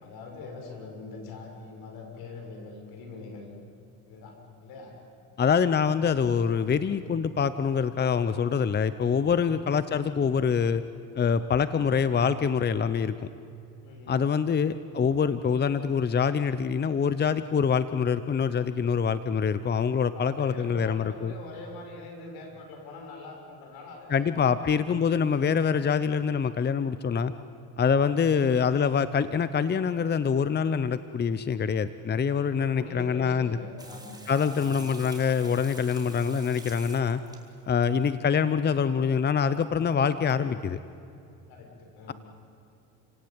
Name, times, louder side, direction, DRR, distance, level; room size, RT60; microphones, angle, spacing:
voice 1, 0.0-3.5 4.1-5.0 8.9-9.1 9.4-9.7 13.8-14.1 20.1-25.1 32.4-34.2 34.4-34.9 41.5-42.1, left 3 dB, 75° left, 2 dB, 6.5 m, -43 dB
voice 2, 5.4-10.8 11.2-13.3 14.1-21.3 24.1-27.3 27.8-33.6 34.3-37.2 37.7-40.8, left 6 dB, 25° left, 14 dB, 0.8 m, -25 dB
Water tap faucet / Sink (filling or washing), 33.8-38.1 39.5-39.6 39.9-40.0 40.3-40.4, right 2 dB, 10° right, 3.4 m, -47 dB
29.5 x 17.5 x 8.9 m, 2.6 s
supercardioid pair, 95°, 37 cm